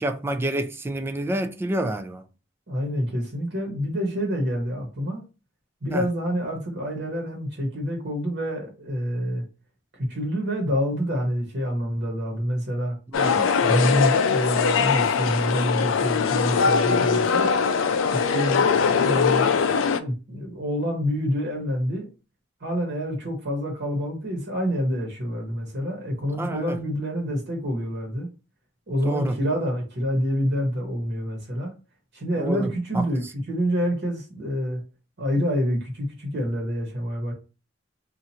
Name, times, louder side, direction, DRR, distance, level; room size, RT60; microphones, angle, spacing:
voice 1, 0.0-2.2 5.9-6.1 13.1-13.5 26.3-26.8 29.0-29.4 32.4-33.0, right 1 dB, 10° right, 0.3 m, -28 dB
voice 2, 2.7-5.2 5.8-9.4 9.9-13.0 13.6-17.5 18.1-22.1 22.6-28.3 28.9-31.7 32.1-34.8 35.2-37.3, equal, 60° right, 1.1 m, -27 dB
sound 1, 13.1-20.0, left 6 dB, 90° left, 0.4 m, -21 dB
2.8 x 2.5 x 4.2 m
head